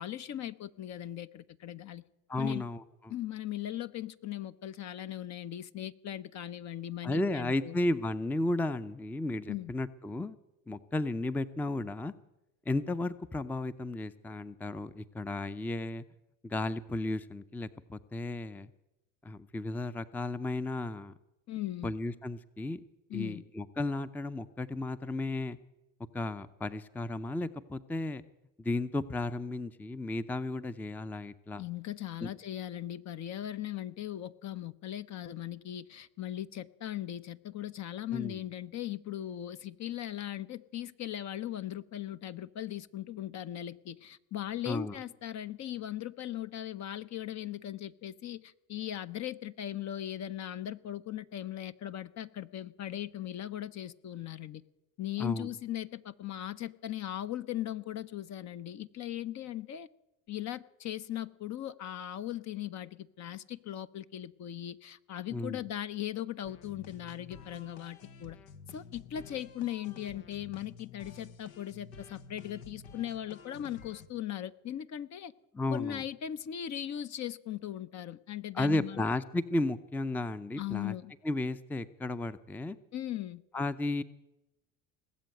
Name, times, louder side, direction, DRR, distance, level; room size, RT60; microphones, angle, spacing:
voice 1, 0.0-2.0 2.4-2.7 3.1-7.8 9.5-9.7 21.5-21.9 23.1-23.4 31.6-54.6 55.0-59.9 60.3-68.4 68.7-75.3 75.7-79.1 80.6-81.1 82.9-83.4, left 12 dB, 45° left, 13 dB, 0.7 m, -39 dB
voice 2, 2.3-3.1 7.0-10.4 10.7-12.1 12.7-16.0 16.4-18.7 19.2-21.1 21.8-22.8 23.1-25.6 26.1-28.2 28.6-31.6 32.2-32.3 38.1-38.4 44.7-45.0 55.2-55.5 65.3-65.6 75.5-76.0 78.5-80.9 81.2-82.8 83.5-84.0, left 2 dB, 5° left, 14 dB, 0.5 m, -34 dB
sound 1, 66.4-74.1, left 5 dB, 85° left, 1.1 m, -51 dB
19.0 x 7.6 x 9.1 m, 0.94 s
hypercardioid pair, 75°, 39 cm